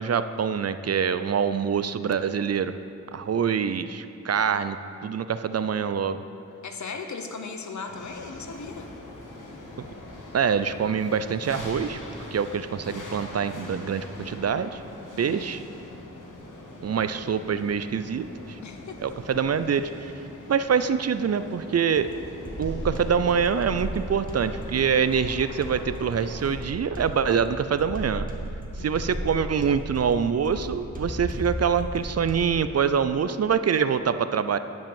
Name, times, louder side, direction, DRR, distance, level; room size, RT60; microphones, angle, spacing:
voice 1, 0.0-2.7 3.1-4.8 5.0-6.2 9.8-9.9 10.3-12.0 12.3-14.8 15.2-15.6 16.8-18.6 19.0-20.1 20.5-22.1 22.6-28.3 28.8-34.6, right 7 dB, 55° right, 12 dB, 0.5 m, -25 dB
voice 2, 6.6-8.9 15.1-15.5 18.6-19.0 28.8-29.1, left 4 dB, 70° left, 5 dB, 1.0 m, -37 dB
sound 1, 7.9-26.6, left 2 dB, 85° left, 1.4 m, -43 dB
sound 2, 22.0-32.6, right 1 dB, 25° right, 1.5 m, -36 dB
10.5 x 5.4 x 7.1 m, 2.7 s
cardioid pair, 60°, 30 cm